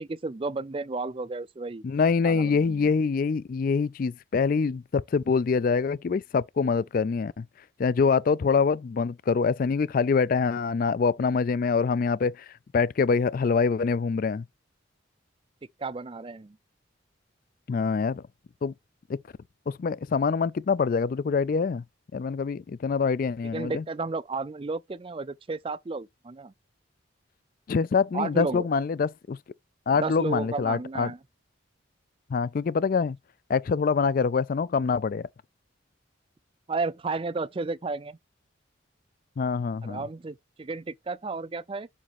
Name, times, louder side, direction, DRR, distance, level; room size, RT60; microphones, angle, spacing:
voice 1, 0.0-1.8 2.2-2.9 15.8-16.6 23.5-26.5 28.1-28.7 29.9-31.2 36.7-38.2 39.8-41.9, right 3 dB, 25° right, 0.4 m, -33 dB
voice 2, 1.8-7.5 7.8-12.5 12.7-14.4 17.7-18.2 18.6-18.7 19.1-19.2 19.7-21.8 22.1-23.8 27.7-29.4 29.9-31.1 32.3-33.2 33.5-35.3 39.4-40.0, left 5 dB, 45° left, 0.3 m, -25 dB
7.3 x 2.9 x 5.9 m
head